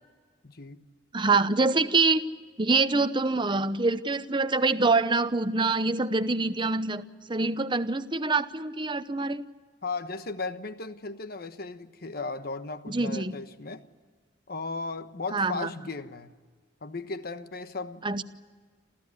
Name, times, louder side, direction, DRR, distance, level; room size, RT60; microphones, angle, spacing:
voice 1, 0.4-0.9 9.8-13.8 14.5-16.3 16.8-18.2, left 3 dB, 55° left, 1.2 m, -36 dB
voice 2, 1.1-2.2 2.6-9.4 12.9-13.4 15.3-15.7 18.0-18.2, right 3 dB, 25° right, 0.8 m, -25 dB
28.0 x 15.0 x 9.6 m
head